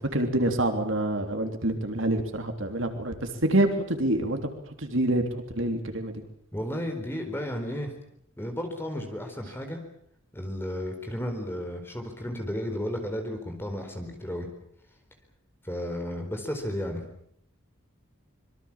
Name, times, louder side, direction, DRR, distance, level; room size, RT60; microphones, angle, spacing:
voice 1, 0.1-5.3 5.5-6.2, right 1 dB, 70° right, 5 dB, 3.4 m, -27 dB
voice 2, 6.5-7.9 8.4-9.8 10.3-14.5 15.6-17.0, equal, 10° left, 4 dB, 4.4 m, -33 dB
26.0 x 23.0 x 7.4 m, 0.68 s
head